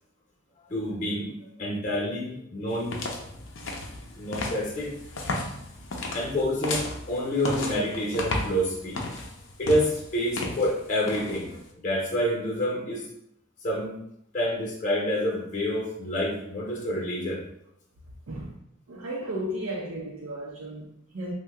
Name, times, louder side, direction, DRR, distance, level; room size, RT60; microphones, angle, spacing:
voice 1, 0.7-3.0 4.1-4.9 6.1-9.0 9.6-13.0 13.6-14.0 14.3-17.4, equal, 40° left, 0.8 m, -28 dB
sound 1, 2.7-11.7, left 2 dB, 65° left, 0.5 m, -34 dB
voice 2, 18.9-21.3, right 1 dB, 80° right, 0.5 m, -34 dB
2.8 x 2.2 x 3.3 m
head